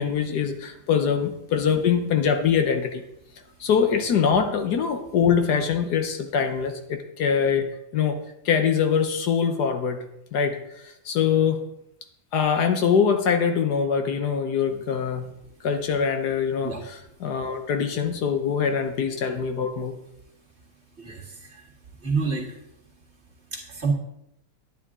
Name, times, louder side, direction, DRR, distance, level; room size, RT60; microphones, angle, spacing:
voice 1, 0.0-3.0 3.6-7.7 7.9-8.2 8.4-10.0 10.3-11.6 12.3-15.3 15.6-16.9 17.2-19.9, left 7 dB, 70° left, 6 dB, 1.4 m, -23 dB
voice 2, 21.0-21.7 22.0-22.5 23.5-23.9, right 4 dB, 40° right, -1 dB, 2.0 m, -28 dB
10.0 x 9.5 x 3.7 m, 0.80 s
omnidirectional pair, 1.9 m